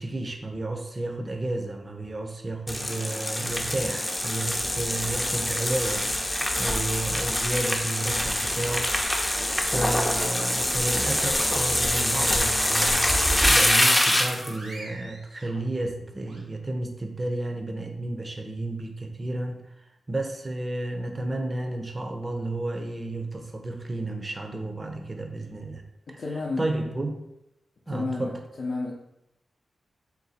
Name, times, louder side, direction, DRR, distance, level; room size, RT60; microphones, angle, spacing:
voice 1, 0.0-6.1 6.3-9.3 9.6-13.1 13.5-19.7 20.1-25.8 26.1-27.1 27.9-28.4, right 2 dB, 30° right, 4 dB, 0.6 m, -32 dB
sound 1, 2.7-14.5, left 1 dB, 15° left, 0.6 m, -25 dB
sound 2, 6.8-8.9 9.3-10.8 11.1-11.3 11.8-12.6 13.0-16.4, right 1 dB, 80° right, 1.1 m, -46 dB
voice 2, 26.1-26.7 27.9-28.9, left 3 dB, 65° left, -4 dB, 0.6 m, -31 dB
4.0 x 2.3 x 4.1 m, 0.87 s
cardioid pair, 70°, 0 cm